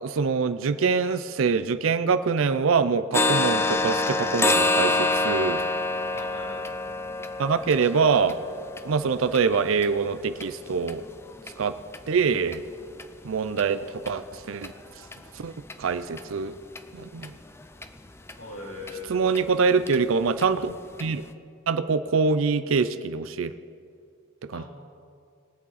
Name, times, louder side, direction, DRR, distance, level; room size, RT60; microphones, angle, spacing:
voice 1, 0.0-5.6 7.4-8.4 8.8-11.0 11.6-11.8 12.1-12.6 13.2-14.7 15.3-16.5 16.9-17.3 19.1-21.2 21.7-23.5 24.5-24.6, right 5 dB, 75° right, 12 dB, 0.5 m, -24 dB
sound 1, 3.1-10.9 11.4-11.5 11.9-12.1 12.5-12.6 13.0-13.1 13.6-13.7 14.0-14.1 14.6-14.7 15.1-15.2 15.7-15.8 16.2-16.3 16.7-16.8 17.2-17.3 17.8-17.9 18.3-18.4 18.9-19.0 19.3-19.4 19.9-20.0 20.4-20.5 21.0-21.1, left 2 dB, 10° left, 0.4 m, -27 dB
voice 2, 6.1-6.8 18.4-19.5 24.5-24.6, left 2 dB, 90° left, -2 dB, 2.8 m, -40 dB
21.0 x 8.3 x 4.1 m, 2.4 s
head